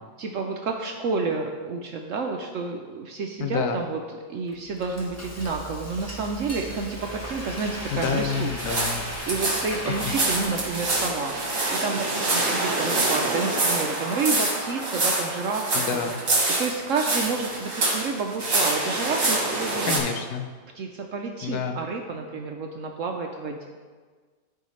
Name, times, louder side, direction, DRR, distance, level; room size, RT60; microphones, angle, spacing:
voice 1, 0.2-4.0 4.3-8.5 9.3-11.4 11.7-16.0 16.6-19.9 20.7-23.6, right 4 dB, 65° right, 2 dB, 0.8 m, -30 dB
voice 2, 3.4-3.8 7.9-9.0 9.9-10.0 15.7-16.2 19.8-20.5 21.4-21.8, left 6 dB, 70° left, 5 dB, 1.1 m, -28 dB
Frying (food), 4.5-11.5, equal, 15° left, 0.5 m, -36 dB
sound 1, 8.6-20.0, right 2 dB, 50° right, 2.0 m, -26 dB
13.5 x 4.7 x 3.2 m, 1.5 s
omnidirectional pair, 1.8 m